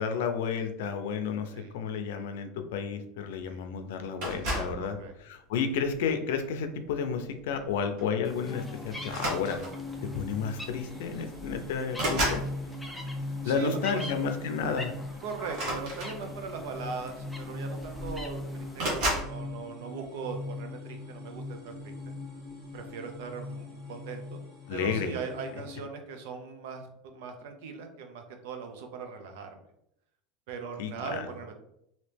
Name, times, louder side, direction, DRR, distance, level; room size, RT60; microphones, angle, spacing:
voice 1, 0.0-5.0 5.2-9.6 10.0-12.4 13.4-14.9 24.7-25.1 30.8-31.3, left 6 dB, 80° left, 7 dB, 0.5 m, -31 dB
sound 1, 4.2-4.8 5.7-6.0 7.5-7.7 8.0-8.2 9.0-9.9 10.9-11.0 11.3-12.5 15.5-16.6 17.5-17.6 17.8-18.3 18.8-19.3, right 1 dB, 50° right, 1.2 m, -32 dB
voice 2, 4.8-5.1 13.4-14.2 15.2-22.1 22.7-24.4 24.7-29.6 30.5-31.6, right 5 dB, 65° right, 5 dB, 0.6 m, -40 dB
sound 2, 8.2-19.2, left 1 dB, ahead, 0.3 m, -45 dB
sound 3, 8.4-25.7, left 2 dB, 15° right, 1.2 m, -41 dB
3.0 x 2.8 x 3.3 m, 0.77 s
supercardioid pair, 170°, 0 cm